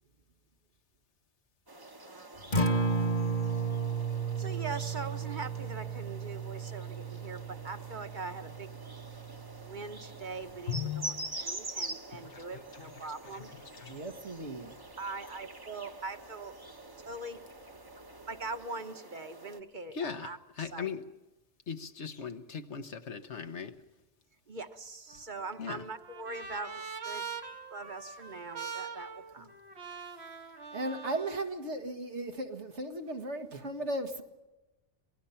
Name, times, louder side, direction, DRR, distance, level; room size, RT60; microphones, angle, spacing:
sound 1, 1.7-19.6, right 2 dB, 20° right, 1.0 m, -46 dB
Acoustic guitar, 2.4-10.6, right 3 dB, 45° left, 1.7 m, -34 dB
voice 1, 4.4-8.8 9.6-13.5 15.0-16.5 17.0-17.4 18.3-20.9 24.5-27.2 27.7-29.5, right 3 dB, 45° right, 8 dB, 1.3 m, -42 dB
voice 2, 10.7-11.3 12.2-12.4 13.9-14.0 19.9-20.3 20.6-21.0 21.7-23.7 25.6-25.8, left 7 dB, 80° left, 8 dB, 1.5 m, -38 dB
voice 3, 13.9-14.8 30.7-34.2, right 2 dB, 80° right, 5 dB, 2.0 m, -36 dB
Trumpet, 25.1-31.4, right 6 dB, 65° right, 1.8 m, -43 dB
27.0 x 19.0 x 5.7 m, 1.0 s
omnidirectional pair, 1.2 m